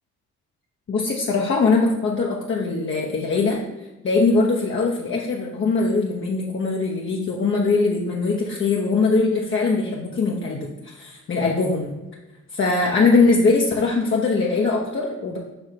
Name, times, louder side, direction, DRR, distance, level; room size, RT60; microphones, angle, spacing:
voice 1, 0.9-3.6 4.0-11.9 12.5-15.4, left 3 dB, 40° left, -3 dB, 1.0 m, -21 dB
7.0 x 2.9 x 5.7 m, 1.0 s
cardioid pair, 90°, 30 cm